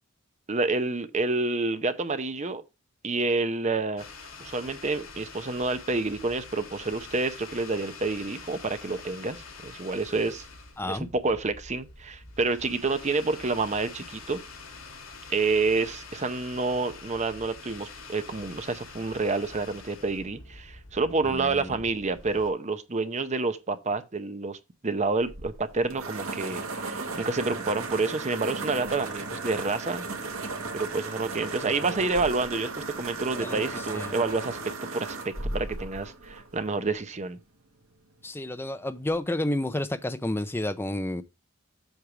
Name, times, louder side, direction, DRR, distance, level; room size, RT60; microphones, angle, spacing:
voice 1, 0.5-2.6 3.0-4.1 4.4-9.4 9.6-10.5 10.9-14.4 15.3-30.1 30.7-34.6 34.9-37.4, right 3 dB, 35° right, 0.7 m, -28 dB
sound 1, 4.0-22.5, left 4 dB, 80° left, 2.5 m, -46 dB
voice 2, 10.8-11.1 21.2-21.8 33.4-34.1 38.2-41.2, left 1 dB, 10° left, 0.5 m, -31 dB
sound 2, 25.2-37.0, right 3 dB, 85° right, 1.6 m, -36 dB
8.1 x 3.5 x 6.0 m
head